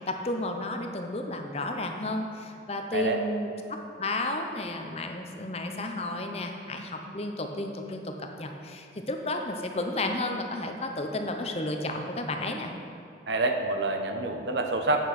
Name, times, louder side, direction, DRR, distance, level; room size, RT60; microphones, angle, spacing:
voice 1, 0.0-3.5 4.0-12.7, left 2 dB, 35° left, 4 dB, 0.7 m, -32 dB
voice 2, 13.3-15.1, right 2 dB, 70° right, 5 dB, 0.8 m, -27 dB
8.2 x 6.9 x 5.9 m, 2.6 s
head